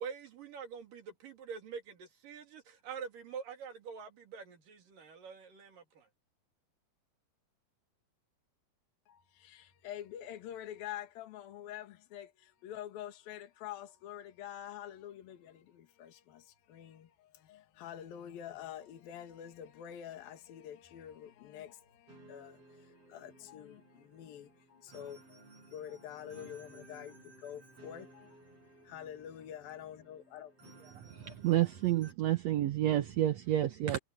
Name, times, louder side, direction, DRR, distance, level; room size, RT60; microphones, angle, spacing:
voice 1, 0.0-6.1, right 6 dB, 60° right, 4.6 m, -45 dB
voice 2, 9.1-30.7 31.1-31.4, left 10 dB, 70° left, 3.6 m, -47 dB
sound 1, 22.1-32.1, right 2 dB, 40° right, 7.3 m, -58 dB
voice 3, 31.2-34.0, right 13 dB, 80° right, 1.5 m, -29 dB
omnidirectional pair, 4.4 m